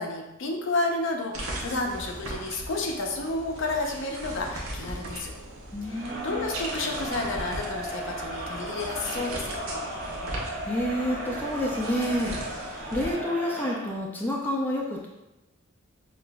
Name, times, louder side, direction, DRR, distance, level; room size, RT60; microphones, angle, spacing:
voice 1, 0.0-5.3 5.9-9.9, left 2 dB, 65° left, 1 dB, 0.6 m, -31 dB
sound 1, 1.3-13.1, right 1 dB, 85° right, 0.8 m, -39 dB
voice 2, 5.7-6.5 10.6-15.1, equal, 10° left, -2 dB, 0.4 m, -29 dB
Crowd, 5.9-13.9, right 1 dB, 45° right, 1.3 m, -36 dB
6.0 x 2.5 x 2.2 m, 0.96 s
head